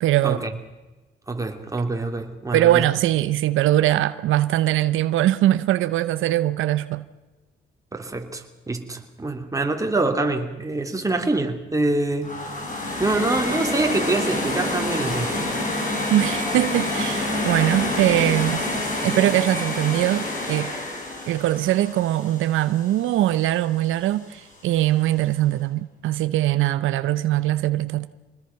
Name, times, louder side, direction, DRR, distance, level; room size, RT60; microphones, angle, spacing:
voice 1, 0.0-0.4 2.5-7.0 16.1-18.6 19.0-20.7 21.3-28.1, right 14 dB, 85° right, 0.8 m, -21 dB
voice 2, 1.3-2.9 7.9-12.4 13.0-15.4, right 2 dB, 15° right, 2.9 m, -25 dB
sound 1, 12.2-23.2, left 2 dB, 40° left, 6.2 m, -27 dB
25.0 x 20.0 x 5.8 m
cardioid pair, 90°, 20 cm